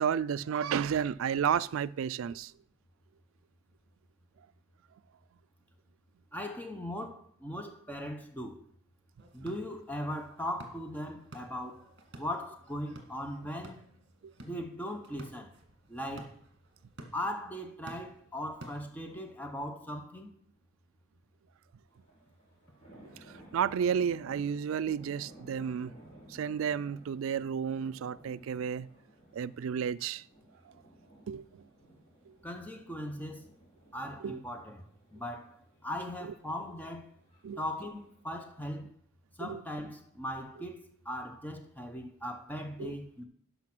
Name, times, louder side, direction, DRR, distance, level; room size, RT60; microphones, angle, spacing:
voice 1, 0.0-2.5 14.2-14.3 23.5-25.9 26.3-28.9 29.3-30.2 31.3-31.6 34.2-34.4 37.4-37.6 39.4-39.6 42.8-42.9, right 7 dB, 75° right, 0.3 m, -32 dB
voice 2, 6.3-8.7 9.3-11.8 12.2-13.8 14.4-15.5 15.9-16.4 17.1-20.3 32.4-33.5 33.9-34.9 35.1-37.1 37.6-38.9 39.4-43.2, left 1 dB, 10° left, 0.8 m, -39 dB
sound 1, 9.2-19.3, right 1 dB, 55° right, 1.8 m, -53 dB
sound 2, 21.9-38.2, right 1 dB, 30° left, 4.4 m, -57 dB
12.0 x 5.5 x 6.0 m
head